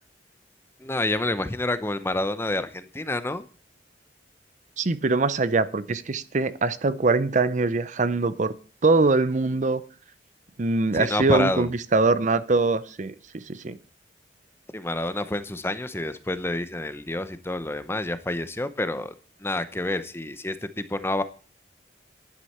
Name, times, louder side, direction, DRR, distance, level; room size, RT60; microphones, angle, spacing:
voice 1, 0.8-3.4 10.9-11.7 14.7-19.1 19.4-21.2, left 2 dB, 15° left, 0.7 m, -28 dB
voice 2, 4.8-8.5 8.8-9.8 10.6-13.8, right 3 dB, 40° right, 0.6 m, -23 dB
11.0 x 9.6 x 4.3 m
head